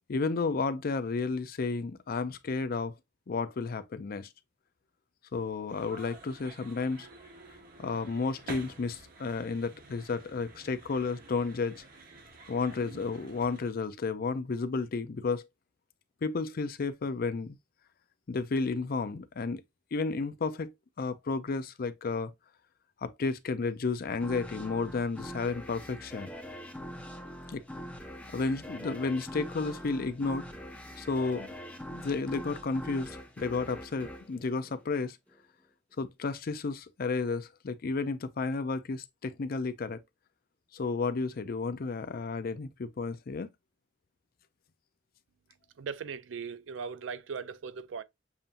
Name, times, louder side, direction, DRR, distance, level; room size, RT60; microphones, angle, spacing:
voice 1, 0.1-2.9 3.3-4.3 5.3-7.1 7.8-11.8 12.5-15.5 16.2-17.6 18.3-19.6 19.9-22.3 23.0-26.3 27.5-27.6 28.3-30.5 31.0-31.5 31.9-35.2 36.0-40.0 40.7-43.5, left 4 dB, 50° left, 0.5 m, -32 dB
sound 1, 5.7-13.7, right 3 dB, 50° right, 1.1 m, -50 dB
sound 2, 24.2-35.4, equal, 10° left, 0.8 m, -43 dB
voice 2, 45.8-48.0, right 6 dB, 80° right, 0.5 m, -39 dB
7.1 x 2.7 x 2.5 m
head